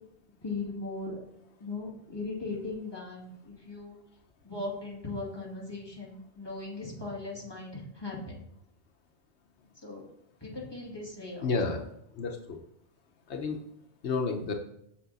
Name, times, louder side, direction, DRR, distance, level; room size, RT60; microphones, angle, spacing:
voice 1, 0.4-1.2 1.6-4.0 4.4-8.4 9.8-10.0 10.4-11.5, left 3 dB, 20° left, -4 dB, 2.2 m, -38 dB
voice 2, 11.4-11.8 12.1-12.6 13.3-13.6 14.0-14.5, left 4 dB, 85° left, 3 dB, 1.2 m, -30 dB
7.4 x 7.0 x 4.0 m, 0.78 s
omnidirectional pair, 1.1 m